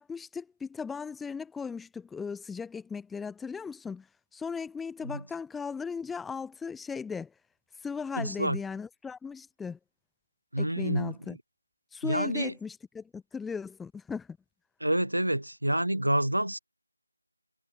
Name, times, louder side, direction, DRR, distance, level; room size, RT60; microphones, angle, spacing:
voice 1, 0.0-4.1 4.3-7.3 7.8-9.8 10.6-11.4 11.9-14.4, left 5 dB, 5° left, 1.7 m, -37 dB
voice 2, 8.2-8.6 10.5-11.3 12.0-12.5 14.8-16.6, right 1 dB, 85° right, 4.3 m, -28 dB
figure-of-eight pair, 165°, 0 cm